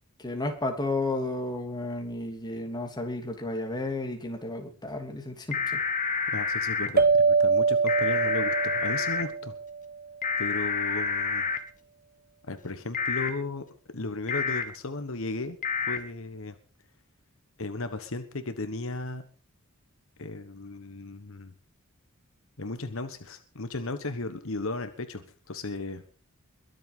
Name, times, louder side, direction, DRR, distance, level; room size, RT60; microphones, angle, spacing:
voice 1, 0.2-5.8, left 2 dB, 20° left, 3 dB, 3.0 m, -32 dB
sound 1, 5.5-6.9 7.9-9.2 10.2-11.6 12.9-13.3 14.3-14.6 15.6-16.0, left 5 dB, 35° left, 1.7 m, -28 dB
voice 2, 6.3-9.5 10.4-11.5 12.4-13.6 13.9-15.6 15.9-16.6 17.6-19.2 20.2-21.5 22.6-26.0, left 2 dB, 65° left, 10 dB, 1.3 m, -35 dB
sound 2, 7.0-9.9, right 4 dB, 45° right, 1.1 m, -24 dB
22.5 x 7.9 x 5.5 m, 0.38 s
head